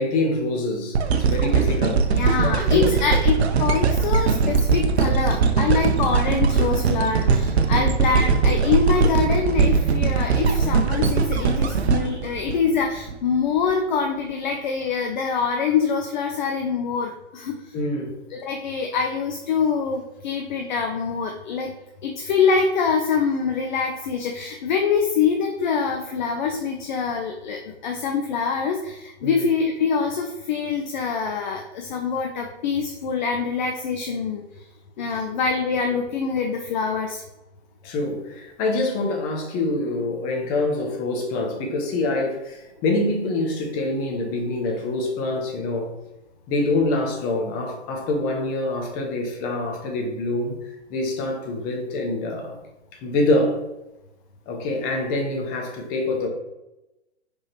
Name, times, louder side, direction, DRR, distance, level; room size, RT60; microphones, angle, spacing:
voice 1, 0.0-2.9 7.7-7.9 17.7-18.1 29.2-29.4 37.8-45.9 46.5-52.6 52.9-53.7 54.5-56.3, left 2 dB, 25° left, 1 dB, 0.9 m, -25 dB
sound 1, 0.9-13.1 13.7-13.8, right 5 dB, 60° right, 0.6 m, -20 dB
voice 2, 2.1-17.5 18.3-21.7 22.0-34.4 35.0-37.2, left 5 dB, 40° left, 3 dB, 0.5 m, -24 dB
5.0 x 3.6 x 2.9 m, 0.97 s
figure-of-eight pair, 115°, 36 cm